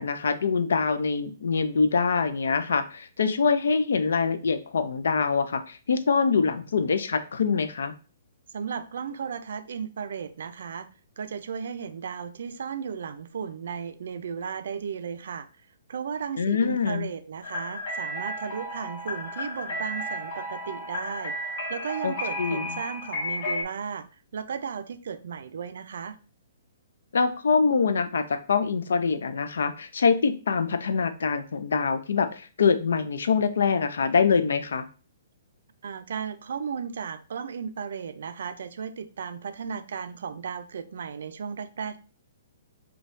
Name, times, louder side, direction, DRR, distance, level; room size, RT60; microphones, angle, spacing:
voice 1, 0.0-7.9 16.4-17.1 22.0-22.8 27.1-34.8, left 5 dB, 80° left, 11 dB, 0.5 m, -24 dB
voice 2, 8.5-10.9 11.2-15.5 15.9-24.1 24.3-26.2 35.8-42.0, right 6 dB, 65° right, 12 dB, 0.4 m, -35 dB
sound 1, 17.4-23.6, left 1 dB, 45° left, 1.4 m, -33 dB
5.1 x 2.3 x 2.6 m, 0.36 s
hypercardioid pair, 165°, 0 cm